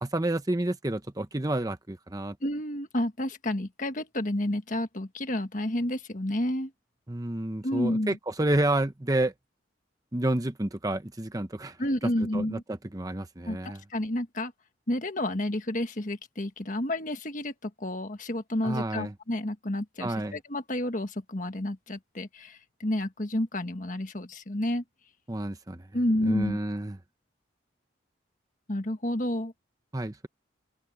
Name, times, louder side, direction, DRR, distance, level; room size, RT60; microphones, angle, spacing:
voice 1, 0.0-2.4 7.1-9.3 10.1-11.8 12.0-13.8 18.6-19.1 20.0-20.4 25.3-25.9 26.2-27.0 29.9-30.3, right 1 dB, 20° right, 0.8 m, -30 dB
voice 2, 2.4-6.7 7.6-8.2 11.8-12.6 13.5-14.5 14.9-24.8 25.9-26.6 28.7-29.5, left 1 dB, 40° left, 1.6 m, -30 dB
open air
head